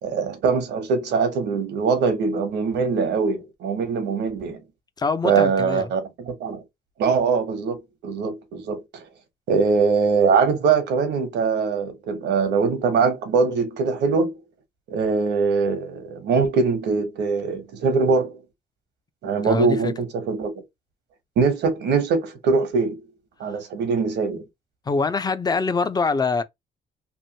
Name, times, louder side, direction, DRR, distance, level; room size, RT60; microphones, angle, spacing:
voice 1, 0.0-4.6 5.2-6.6 7.0-8.8 9.5-14.3 14.9-18.4 19.2-20.5 21.4-23.0 23.4-24.4, right 5 dB, 80° right, 1.0 m, -22 dB
voice 2, 5.0-5.9 19.4-19.9 24.9-26.4, left 4 dB, 25° left, 0.5 m, -24 dB
3.0 x 2.6 x 2.7 m
cardioid pair, 100°, 18 cm